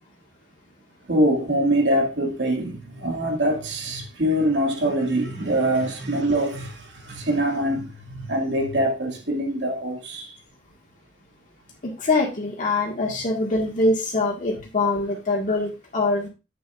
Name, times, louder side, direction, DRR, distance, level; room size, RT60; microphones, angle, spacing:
voice 1, 1.1-10.4, right 1 dB, 80° right, 2.4 m, -24 dB
voice 2, 11.8-16.3, left 2 dB, 45° left, 1.9 m, -23 dB
11.0 x 8.0 x 2.5 m
head